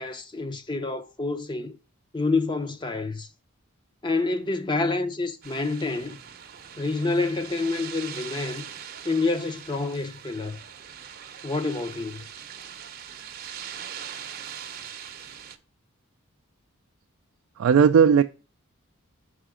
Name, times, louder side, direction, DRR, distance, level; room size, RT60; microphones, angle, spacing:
voice 1, 0.0-1.8 2.1-3.3 4.0-6.2 6.8-8.6 9.0-10.6 11.4-12.2, left 3 dB, 20° left, 0.6 m, -28 dB
sound 1, 5.4-15.6, right 8 dB, 45° right, 0.6 m, -41 dB
voice 2, 17.6-18.2, right 7 dB, 75° right, 0.3 m, -16 dB
5.7 x 4.9 x 4.8 m
head